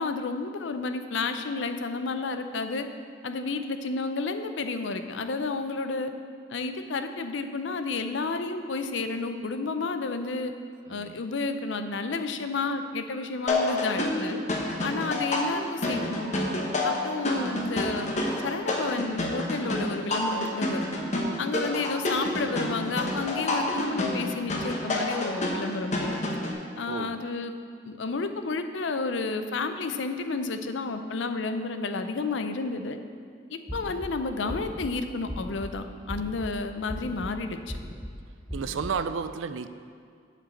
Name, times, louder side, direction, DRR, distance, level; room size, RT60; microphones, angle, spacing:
voice 1, 0.0-2.9 3.2-6.1 6.5-10.5 10.9-14.4 14.8-16.4 16.8-18.1 18.4-20.9 21.4-26.2 26.8-27.5 27.8-33.0 33.5-37.8, left 3 dB, 75° left, 8 dB, 0.6 m, -31 dB
voice 2, 10.9-11.2 15.8-16.3 26.3-26.6 26.9-27.2 38.5-39.7, right 5 dB, 90° right, 12 dB, 0.4 m, -33 dB
sound 1, 13.5-26.5, left 1 dB, 40° left, 1.0 m, -29 dB
sound 2, 33.7-34.1 34.5-34.9 35.3-35.7 36.1-36.5 36.9-37.3 37.7-38.1 38.5-38.9, equal, ahead, 0.5 m, -37 dB
7.8 x 5.0 x 7.1 m, 2.2 s
head